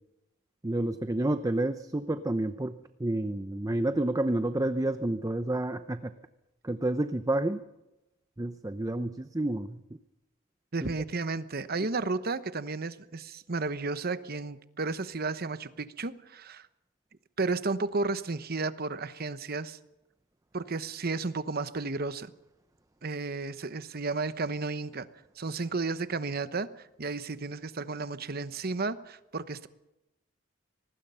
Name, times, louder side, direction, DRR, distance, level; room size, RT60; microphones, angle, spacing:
voice 1, 0.6-6.1 6.6-7.6 8.4-9.8, right 1 dB, 15° right, 10 dB, 0.7 m, -29 dB
voice 2, 10.7-16.7 17.4-19.8 20.5-22.3 23.0-25.1 25.4-29.7, right 3 dB, 50° right, 13 dB, 1.0 m, -33 dB
25.0 x 19.5 x 5.6 m, 0.94 s
head